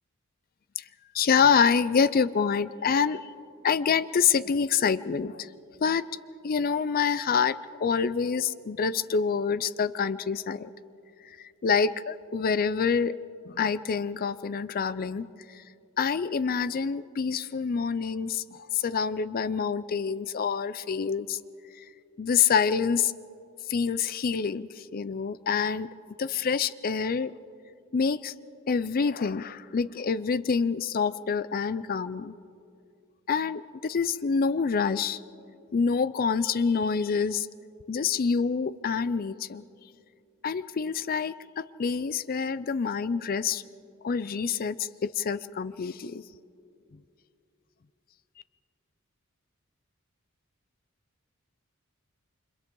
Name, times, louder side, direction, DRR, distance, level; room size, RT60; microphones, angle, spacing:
voice 1, 1.1-3.3 3.6-5.5 5.8-6.0 6.4-10.7 11.2-13.2 13.5-15.6 16.0-21.4 21.7-21.9 22.2-23.1 23.7-25.9 26.2-27.3 27.9-28.3 28.7-32.3 33.3-35.2 35.7-37.5 37.9-39.7 40.4-43.6 44.0-46.2, left 6 dB, 45° left, 15 dB, 0.4 m, -27 dB
29.0 x 26.0 x 3.8 m, 2.5 s
head